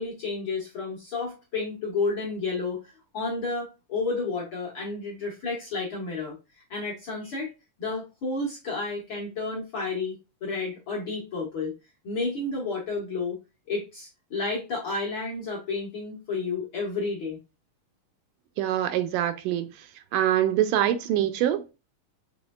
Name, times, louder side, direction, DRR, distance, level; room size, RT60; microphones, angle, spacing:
voice 1, 0.0-7.5 7.8-10.1 10.4-11.7 12.0-13.4 13.7-17.4, left 3 dB, 55° left, 1.5 m, -31 dB
voice 2, 18.6-19.7 20.1-21.7, right 11 dB, 85° right, 2.1 m, -24 dB
6.1 x 3.2 x 2.3 m
omnidirectional pair, 3.7 m